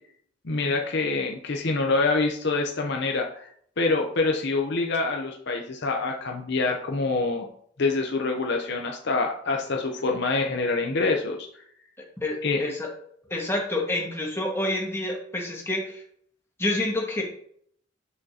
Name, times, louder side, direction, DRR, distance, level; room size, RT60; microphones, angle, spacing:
voice 1, 0.4-3.5 3.8-7.5 7.8-11.4 12.4-12.6, left 3 dB, 60° left, 2 dB, 0.8 m, -26 dB
voice 2, 12.0-12.9 13.3-16.0 16.6-17.2, left 1 dB, 15° left, -2 dB, 1.7 m, -28 dB
7.0 x 6.4 x 2.9 m, 0.63 s
head